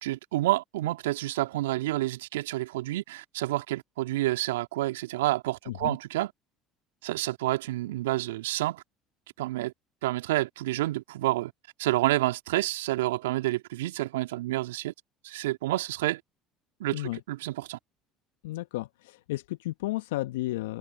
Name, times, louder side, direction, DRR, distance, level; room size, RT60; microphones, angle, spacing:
voice 1, 0.0-6.3 7.0-8.8 9.4-9.7 10.0-11.5 11.8-14.9 15.2-16.2 16.8-17.8, right 17 dB, 75° right, 1.9 m, -29 dB
voice 2, 5.7-6.0 16.9-17.2 18.4-20.8, left 18 dB, 75° left, 1.0 m, -33 dB
hypercardioid pair, 60°, 0 cm